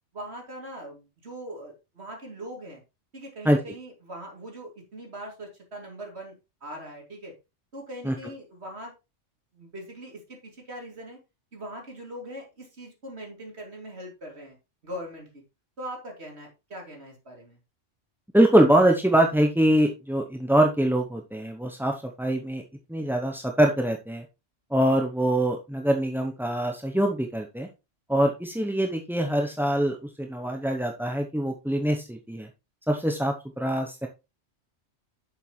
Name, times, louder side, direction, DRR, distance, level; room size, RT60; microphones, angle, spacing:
voice 1, 0.1-2.8 3.1-6.3 6.6-7.3 7.7-8.9 9.5-11.2 11.5-14.6 14.8-15.4 15.8-17.6, right 1 dB, 60° right, 1 dB, 3.1 m, -41 dB
voice 2, 18.3-22.6 22.9-24.2 24.7-27.7 28.1-32.5 32.9-34.1, right 1 dB, 5° right, 2 dB, 0.5 m, -23 dB
8.2 x 7.2 x 3.1 m, 0.27 s
omnidirectional pair, 1.2 m